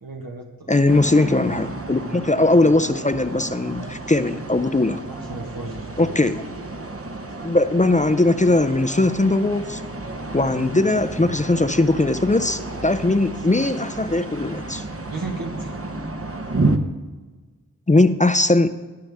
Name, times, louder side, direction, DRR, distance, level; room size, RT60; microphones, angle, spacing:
voice 1, 0.0-0.7 4.3-4.4 4.8-6.5 6.8-6.9 15.1-15.7, right 3 dB, 70° right, 0 dB, 1.3 m, -35 dB
voice 2, 0.7-5.0 6.0-6.4 7.4-9.8 10.3-14.8 17.9-18.7, left 2 dB, 20° left, 11 dB, 0.4 m, -19 dB
sound 1, 0.9-16.8, right 2 dB, 40° right, 0.8 m, -31 dB
18.5 x 6.8 x 3.5 m, 1.3 s
wide cardioid pair, 45°, 36 cm